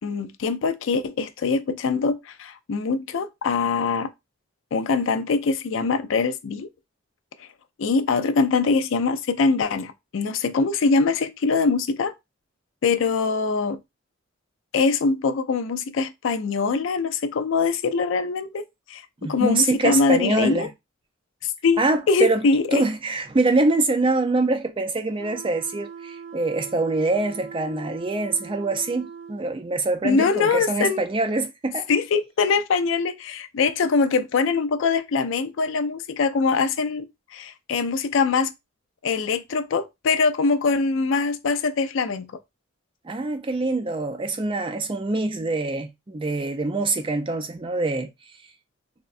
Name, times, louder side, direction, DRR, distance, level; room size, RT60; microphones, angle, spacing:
voice 1, 0.0-4.1 4.7-6.7 7.4-7.5 7.8-12.1 12.8-13.8 14.7-18.6 18.9-20.7 21.4-21.8 22.1-22.8 30.0-31.0 31.9-38.5 39.0-42.3, left 4 dB, 65° left, 0.4 m, -23 dB
voice 2, 19.2-20.7 21.8-22.4 22.7-31.9 43.0-48.1, right 2 dB, 25° right, 0.4 m, -24 dB
sound 1, 25.2-29.4, right 7 dB, 90° right, 0.5 m, -41 dB
3.5 x 2.1 x 2.4 m
head